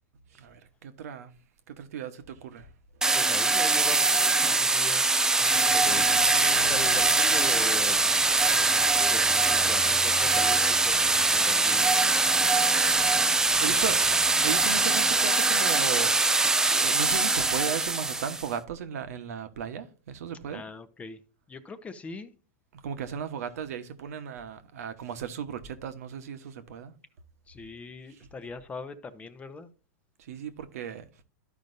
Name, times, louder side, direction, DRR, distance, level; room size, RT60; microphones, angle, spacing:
voice 1, 0.3-1.3 1.7-2.7 3.1-3.3 5.9-6.1 12.9-13.2 13.6-14.0 14.4-20.6 22.7-26.9 28.2-28.3 30.2-31.1, right 8 dB, 75° right, 1.1 m, -36 dB
sound 1, 3.0-18.5, right 3 dB, 5° right, 0.3 m, -23 dB
voice 2, 3.1-5.2 5.7-6.1 6.7-8.2 9.1-11.9 13.5-13.8 20.5-21.2 21.5-22.3 27.5-29.7, left 4 dB, 15° left, 0.7 m, -41 dB
sound 2, 5.4-15.3, right 4 dB, 25° right, 0.8 m, -44 dB
13.0 x 5.2 x 2.6 m
hypercardioid pair, 125°, 8 cm